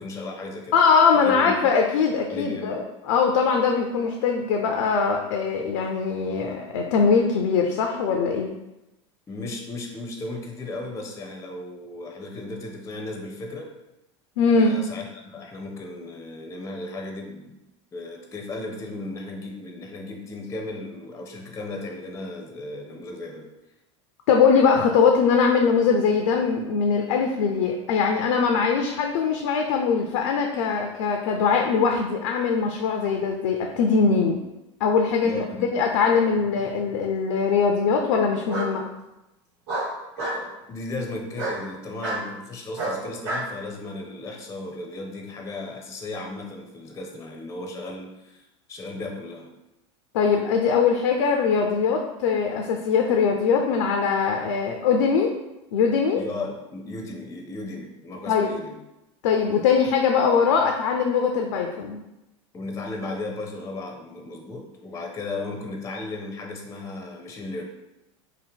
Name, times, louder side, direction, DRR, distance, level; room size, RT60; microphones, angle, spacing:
voice 1, 0.0-0.8 1.1-1.6 2.3-2.8 9.3-13.7 14.6-17.6 17.9-23.4 35.2-35.7 40.2-49.5 56.2-58.8 62.5-67.6, left 2 dB, 20° left, 2 dB, 0.5 m, -35 dB
voice 2, 0.7-8.5 14.4-14.7 24.3-34.4 34.8-38.8 50.1-55.4 55.7-56.2 58.3-58.5 59.2-62.0, left 5 dB, 75° left, 3 dB, 0.4 m, -21 dB
Bark, 36.3-37.0 38.5-38.7 39.7-40.4 41.3-41.6 42.0-42.2 42.8-43.5, right 2 dB, 70° right, 1.3 m, -29 dB
2.8 x 2.0 x 3.5 m, 0.96 s
hypercardioid pair, 100°, 16 cm